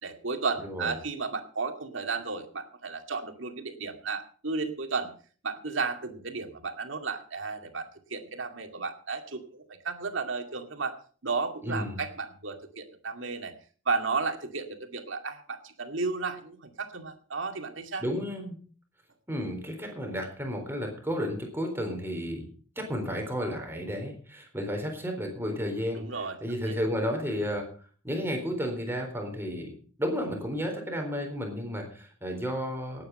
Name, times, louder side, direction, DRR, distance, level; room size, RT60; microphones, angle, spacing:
voice 1, 0.0-5.1 5.4-11.0 11.2-13.5 13.9-18.0 25.9-26.4 26.7-26.8, right 4 dB, 70° right, 5 dB, 2.3 m, -33 dB
voice 2, 0.6-0.9 11.6-12.0 18.0-18.5 19.3-22.5 22.8-26.1 26.4-27.7 28.0-29.7 30.0-33.1, equal, 10° right, 3 dB, 4.0 m, -32 dB
18.0 x 8.9 x 5.5 m, 0.43 s
head